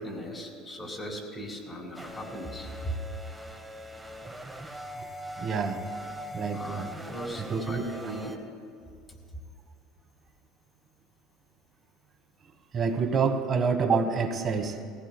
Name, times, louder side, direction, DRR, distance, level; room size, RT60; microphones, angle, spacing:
voice 1, 0.0-2.9 6.5-8.4, equal, 25° left, 1 dB, 2.7 m, -38 dB
sound 1, 1.9-8.4, equal, 5° right, 1.2 m, -41 dB
voice 2, 5.4-5.8 6.3-6.9 7.4-8.1 12.7-14.8, right 5 dB, 40° right, 6 dB, 1.3 m, -28 dB
18.5 x 15.5 x 2.2 m, 2.2 s
hypercardioid pair, 75°, 0 cm